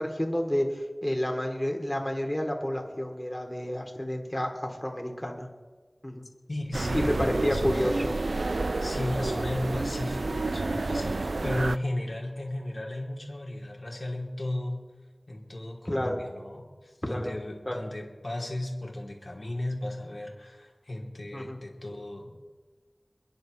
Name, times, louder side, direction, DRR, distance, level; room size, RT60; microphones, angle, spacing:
voice 1, 0.0-5.5 6.0-6.2 6.9-8.1 8.6-8.7 15.8-16.2 17.0-17.4 17.7-17.8 21.3-21.6, equal, 15° left, 2 dB, 2.8 m, -30 dB
voice 2, 6.5-8.1 8.8-14.9 15.3-22.3, left 1 dB, 65° left, -1 dB, 2.9 m, -35 dB
sound 1, 6.7-11.8, right 2 dB, 85° right, 0.3 m, -29 dB
29.0 x 10.5 x 3.2 m, 1.3 s
wide cardioid pair, 50°, 0 cm